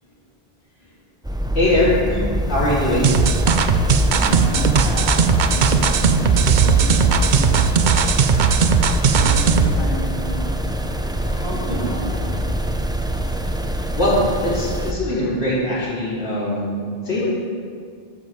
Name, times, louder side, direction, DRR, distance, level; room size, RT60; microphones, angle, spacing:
sound 1, 1.2-14.9, equal, 5° right, 0.3 m, -24 dB
voice 1, 1.5-1.9 2.5-3.1 11.6-11.8 14.0-14.2 14.4-17.3, left 1 dB, 85° left, -8 dB, 2.8 m, -21 dB
sound 2, 3.0-9.8, right 6 dB, 55° right, 0.6 m, -17 dB
voice 2, 4.0-8.1 9.1-10.6 11.2-12.5 15.4-15.7, equal, 50° left, -8 dB, 2.8 m, -32 dB
12.5 x 7.3 x 4.6 m, 2.1 s
omnidirectional pair, 1.1 m